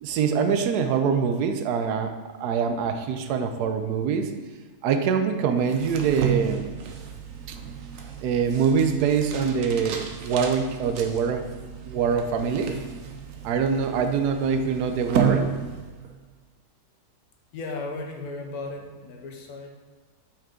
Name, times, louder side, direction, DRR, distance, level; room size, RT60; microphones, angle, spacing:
voice 1, 0.0-4.3 4.8-6.7 8.2-11.4 11.8-12.8 13.4-15.5, right 6 dB, 85° right, 7 dB, 1.1 m, -24 dB
sound 1, 5.6-16.2, right 7 dB, 65° right, 1.0 m, -33 dB
voice 2, 17.5-19.7, left 3 dB, 75° left, 2 dB, 1.3 m, -35 dB
5.5 x 5.2 x 3.6 m, 1.4 s
omnidirectional pair, 1.6 m